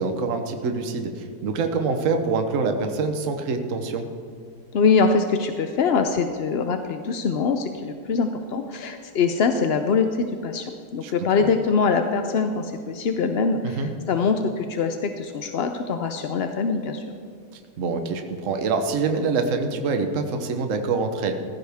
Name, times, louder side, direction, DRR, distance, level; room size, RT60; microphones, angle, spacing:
voice 1, 0.0-4.0 11.0-11.1 11.4-11.5 13.6-13.9 17.8-21.3, right 4 dB, 55° right, 6 dB, 1.3 m, -25 dB
voice 2, 4.7-17.0, left 5 dB, 60° left, 6 dB, 0.7 m, -23 dB
16.5 x 14.5 x 3.6 m, 2.2 s
omnidirectional pair, 1.7 m